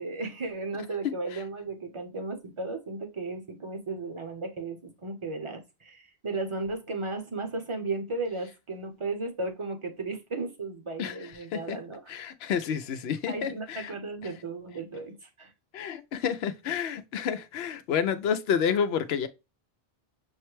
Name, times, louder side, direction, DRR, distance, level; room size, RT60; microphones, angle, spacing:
voice 1, 0.0-12.0 13.3-15.5, right 3 dB, 30° right, 0.8 m, -35 dB
voice 2, 11.0-11.8 12.1-13.9 15.7-19.3, left 7 dB, 75° left, 0.8 m, -30 dB
6.4 x 2.1 x 3.1 m
omnidirectional pair, 1.1 m